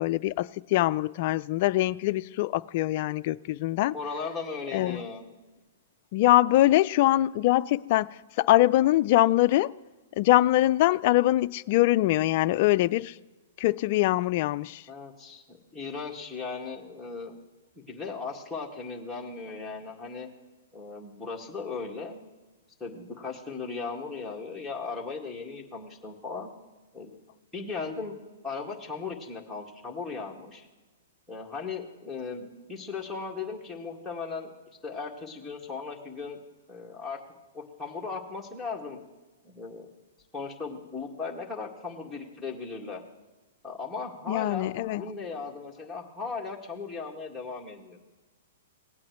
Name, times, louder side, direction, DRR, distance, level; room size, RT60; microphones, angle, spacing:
voice 1, 0.0-3.9 4.7-5.0 6.1-8.1 8.4-9.7 10.2-13.1 13.6-14.8 44.3-45.0, left 16 dB, 50° left, 0.4 m, -23 dB
voice 2, 3.9-5.2 14.9-17.3 17.8-20.3 20.7-22.2 22.8-26.5 26.9-27.1 27.5-28.2 28.4-30.7 31.3-34.5 34.8-36.4 36.7-37.2 37.5-39.0 39.4-39.9 40.3-43.0 43.6-48.0, left 4 dB, ahead, 2.0 m, -37 dB
18.5 x 8.5 x 3.2 m
hypercardioid pair, 130°, 0 cm